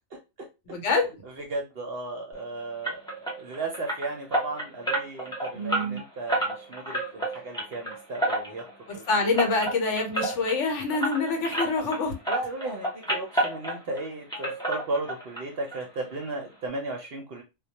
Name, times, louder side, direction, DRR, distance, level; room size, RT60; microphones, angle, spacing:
voice 1, 0.7-1.1 5.5-6.0 9.1-12.1, left 3 dB, 65° left, 1.0 m, -26 dB
voice 2, 1.4-3.0 3.4-8.6 8.9-9.1 12.3-17.4, right 2 dB, 60° right, 0.7 m, -35 dB
sound 1, 2.8-12.0 12.2-14.0 14.3-15.4 15.7-15.8 16.2-16.3 16.7-16.8, right 1 dB, 5° left, 0.4 m, -30 dB
2.2 x 2.1 x 2.8 m
omnidirectional pair, 1.4 m